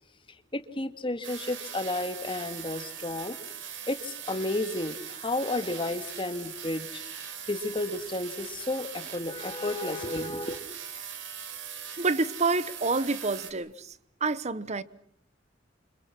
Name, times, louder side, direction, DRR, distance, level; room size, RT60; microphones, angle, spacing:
voice 1, 0.5-3.4 3.9-7.0 7.5-10.6, left 2 dB, 25° left, 1.9 m, -32 dB
sound 1, 1.2-13.5, right 8 dB, 70° right, 3.7 m, -40 dB
voice 2, 12.0-13.9 14.2-14.8, right 3 dB, 35° right, 1.0 m, -28 dB
29.0 x 26.0 x 5.9 m
head